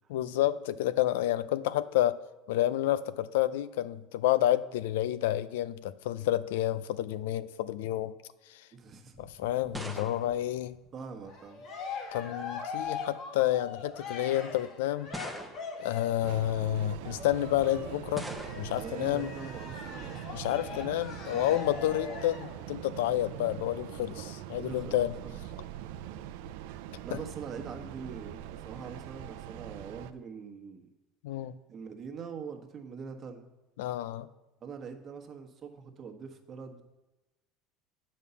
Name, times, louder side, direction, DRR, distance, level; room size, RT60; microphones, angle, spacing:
voice 1, 0.1-2.2 2.5-8.1 8.5-8.7 9.2-10.8 12.1-15.1 15.8-18.3 18.6-19.3 20.3-25.1 27.1-27.2 31.2-31.5 33.8-34.3, left 13 dB, 85° left, 15 dB, 0.4 m, -29 dB
voice 2, 8.7-9.2 10.9-11.6 18.8-20.8 21.2-21.9 24.6-25.4 27.0-30.9 31.7-33.5 34.6-36.8, right 5 dB, 40° right, 4 dB, 1.3 m, -43 dB
sound 1, 9.1-11.5 12.5-13.0 13.8-13.9 15.1-15.9 18.2-18.9, right 1 dB, 5° right, 0.9 m, -43 dB
Cheering, 11.2-16.3 17.0-22.6, left 5 dB, 55° left, 2.0 m, -41 dB
Train, 16.2-30.1, right 11 dB, 80° right, 0.5 m, -43 dB
8.3 x 5.5 x 6.9 m, 1.0 s
supercardioid pair, 105°, 0 cm